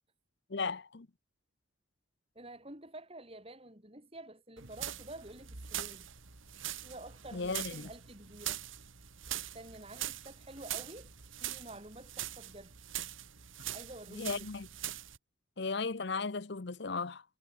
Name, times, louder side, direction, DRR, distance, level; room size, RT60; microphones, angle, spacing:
voice 1, 0.5-1.1 7.3-7.9 14.1-14.7 15.6-17.2, left 4 dB, 60° left, 0.8 m, -36 dB
voice 2, 2.3-6.1 6.8-8.6 9.4-11.1 11.4-12.7 13.7-14.5, right 1 dB, 30° right, 6.1 m, -49 dB
sound 1, 4.6-15.2, right 12 dB, 80° right, 2.2 m, -42 dB
head